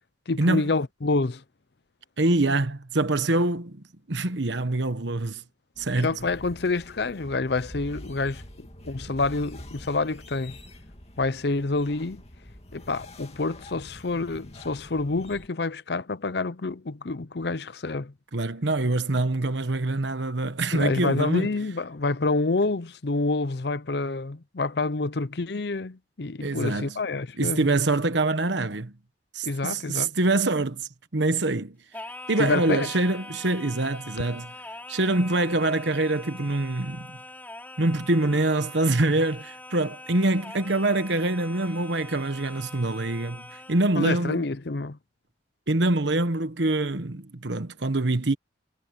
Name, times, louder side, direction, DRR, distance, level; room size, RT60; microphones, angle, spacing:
voice 1, 0.3-1.4 6.0-10.6 11.2-12.2 12.7-18.1 20.7-27.7 29.4-30.2 32.4-33.0 43.9-45.0, left 3 dB, 55° left, 0.7 m, -28 dB
voice 2, 2.2-5.4 5.8-6.1 18.3-21.5 26.4-26.9 27.4-28.9 29.3-31.8 32.3-34.5 34.9-37.2 37.8-44.4 45.7-48.3, right 2 dB, 65° right, 1.2 m, -25 dB
sound 1, 5.7-15.5, left 1 dB, 35° left, 2.5 m, -45 dB
Singing, 31.9-44.0, left 2 dB, 10° left, 5.0 m, -43 dB
head